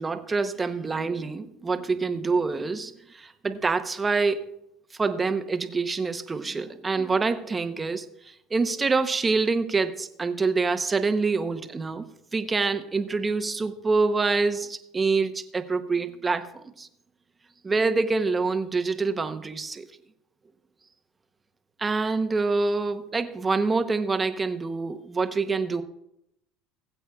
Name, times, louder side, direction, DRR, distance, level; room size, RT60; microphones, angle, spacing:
voice 1, 0.0-4.4 5.0-12.0 12.3-16.9 17.6-19.9 21.8-25.8, right 4 dB, 20° right, 8 dB, 0.8 m, -26 dB
20.5 x 8.0 x 2.4 m, 0.78 s
supercardioid pair, 110°, 0 cm